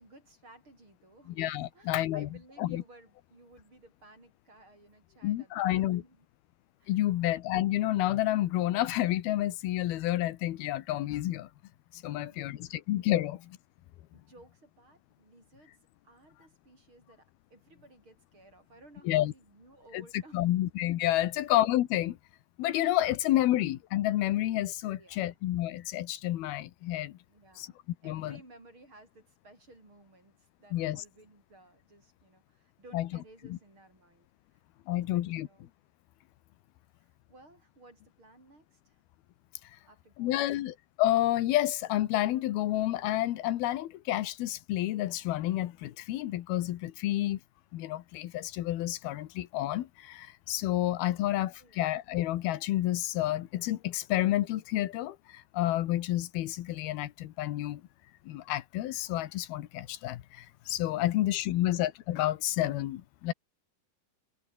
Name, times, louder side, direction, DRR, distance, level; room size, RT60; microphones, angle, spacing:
voice 1, 0.0-6.3 6.8-7.0 12.0-12.8 13.1-13.3 14.1-15.8 16.0-20.6 21.3-21.5 24.9-25.2 27.3-27.8 28.0-34.6 34.9-35.7 37.0-39.0 39.9-40.7 51.6-51.9 61.1-61.8, right 2 dB, 30° right, 7.3 m, -58 dB
voice 2, 1.4-2.3 2.6-2.8 5.2-6.0 6.9-11.5 11.9-13.4 19.1-19.3 19.9-22.2 22.6-27.2 27.6-27.7 28.0-28.4 30.7-31.0 32.9-33.1 33.5-33.6 34.9-35.5 40.2-47.4 47.7-57.8 58.3-63.3, left 14 dB, 85° left, 3.1 m, -30 dB
omnidirectional pair, 4.3 m